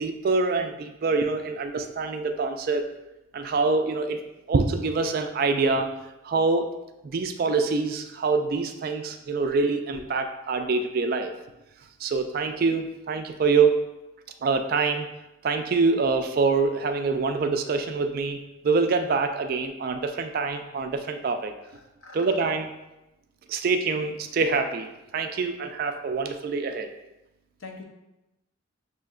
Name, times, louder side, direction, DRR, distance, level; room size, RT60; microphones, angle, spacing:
voice 1, 0.0-2.9 3.3-4.2 4.5-5.9 6.2-6.7 7.0-11.3 12.0-13.8 14.4-15.1 15.4-18.4 18.6-21.5 22.1-22.7 23.5-26.9, right 4 dB, 45° right, 7 dB, 0.3 m, -25 dB
voice 2, 21.7-22.4 27.6-27.8, left 3 dB, 75° left, 1 dB, 0.7 m, -43 dB
6.3 x 2.8 x 2.3 m, 0.95 s
head